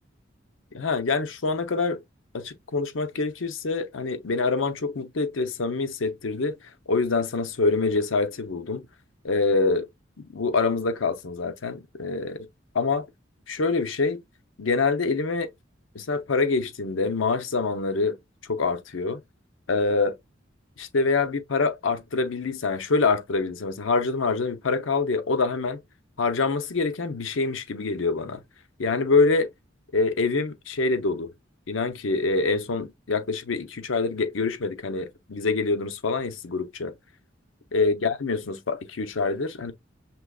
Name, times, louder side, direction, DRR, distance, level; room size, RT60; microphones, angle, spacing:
voice 1, 0.7-2.0 2.3-6.6 6.9-8.8 9.2-9.9 10.2-12.5 12.7-13.0 13.5-14.2 14.6-15.5 15.9-18.2 18.5-19.2 19.7-20.2 20.8-25.8 26.2-28.4 28.8-29.5 29.9-31.3 31.7-36.9 37.7-39.7, left 3 dB, 85° left, 0.7 m, -25 dB
6.1 x 3.0 x 2.3 m
head